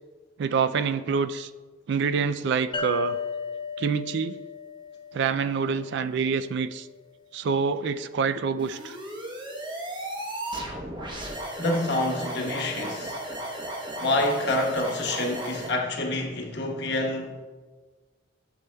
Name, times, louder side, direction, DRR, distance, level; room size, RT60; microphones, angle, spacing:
voice 1, 0.4-1.5 1.9-3.2 3.8-4.4 5.1-6.9 7.3-9.0, right 6 dB, 60° right, 0.3 m, -26 dB
sound 1, 2.7-6.2, left 5 dB, 25° left, 0.6 m, -34 dB
sound 2, 8.6-15.7, right 1 dB, 25° right, 0.9 m, -35 dB
voice 2, 11.6-13.2 14.0-17.3, left 1 dB, 60° left, 1.1 m, -27 dB
11.0 x 6.8 x 2.2 m
head